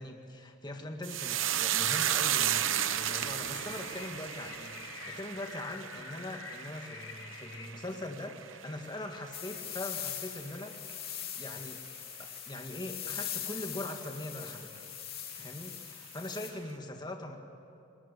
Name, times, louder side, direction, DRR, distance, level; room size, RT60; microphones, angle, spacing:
voice 1, 0.0-10.8 11.4-11.8 12.2-14.8 15.3-17.4, left 1 dB, 20° left, 4 dB, 1.8 m, -41 dB
sound 1, 1.0-9.6 9.9-10.6 10.9-11.1, right 10 dB, 65° right, 0.9 m, -33 dB
sound 2, 2.8-7.6, left 5 dB, 75° left, 4.5 m, -47 dB
sound 3, 9.3-16.5, left 11 dB, 45° left, 3.1 m, -41 dB
29.5 x 21.0 x 8.3 m, 2.7 s
head